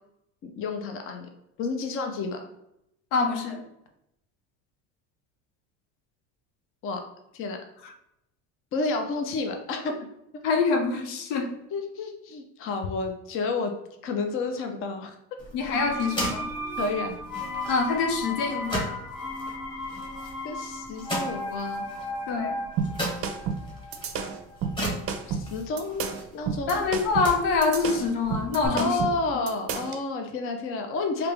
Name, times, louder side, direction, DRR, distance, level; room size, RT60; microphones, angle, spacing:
voice 1, 0.4-1.3 1.6-2.5 6.8-7.1 7.3-7.6 8.7-10.0 11.7-13.7 14.0-15.2 16.8-17.2 20.4-21.9 25.3-26.1 26.3-26.8 28.7-31.3, left 3 dB, 40° left, 5 dB, 0.5 m, -30 dB
voice 2, 3.1-3.6 10.4-11.5 15.5-16.5 17.7-18.9 22.3-22.6 26.7-29.0, left 4 dB, 80° left, 4 dB, 0.8 m, -25 dB
sound 1, 15.4-28.7, right 1 dB, 15° left, 1.3 m, -38 dB
sound 2, 15.7-25.4 25.7-25.8, left 1 dB, 5° right, 0.8 m, -36 dB
sound 3, 22.8-30.0, right 6 dB, 40° right, 0.5 m, -31 dB
3.4 x 2.9 x 3.3 m, 0.82 s
supercardioid pair, 120°, 35 cm